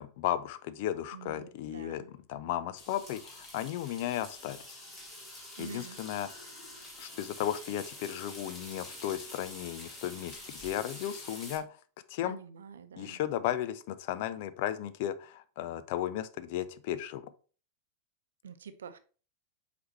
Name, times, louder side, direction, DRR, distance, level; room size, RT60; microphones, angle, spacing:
voice 1, 0.0-4.8 5.6-6.3 7.0-11.7 12.1-12.4 13.0-17.3, left 11 dB, 50° left, 13 dB, 0.6 m, -35 dB
voice 2, 1.1-2.1 5.6-6.0 12.2-13.2 18.4-19.0, right 6 dB, 65° right, 11 dB, 0.7 m, -46 dB
sound 1, 2.8-11.6, left 1 dB, 20° left, 2.4 m, -47 dB
7.9 x 5.1 x 3.1 m, 0.38 s
figure-of-eight pair, 90°, 0 cm